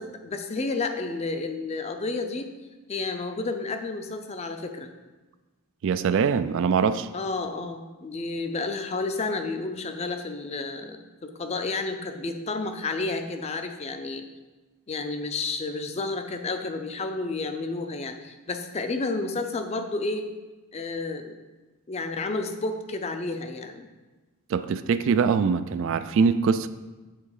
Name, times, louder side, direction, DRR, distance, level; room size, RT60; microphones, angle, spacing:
voice 1, 0.0-2.5 2.9-4.9 7.1-14.2 14.9-20.3 20.7-21.4 21.9-23.9, left 3 dB, 30° left, 7 dB, 0.4 m, -31 dB
voice 2, 5.8-7.1 24.5-26.7, right 6 dB, 60° right, 13 dB, 0.3 m, -23 dB
7.5 x 3.8 x 4.8 m, 1.2 s
head